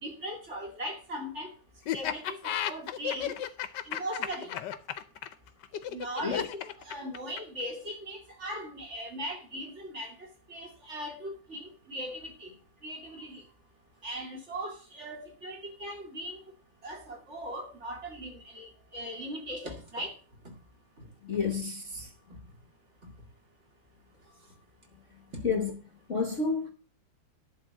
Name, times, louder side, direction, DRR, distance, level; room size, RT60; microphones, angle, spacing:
voice 1, 0.0-1.5 1.9-3.3 3.8-4.5 5.9-12.5 12.8-13.4 14.0-16.4 16.8-20.1, equal, 35° right, 2.5 m, -39 dB
Laughter, 1.9-7.6, left 10 dB, 70° left, 1.3 m, -33 dB
voice 2, 21.2-22.1 25.4-25.7 26.1-26.7, left 5 dB, 45° left, 1.2 m, -30 dB
11.0 x 4.0 x 7.7 m
omnidirectional pair, 2.1 m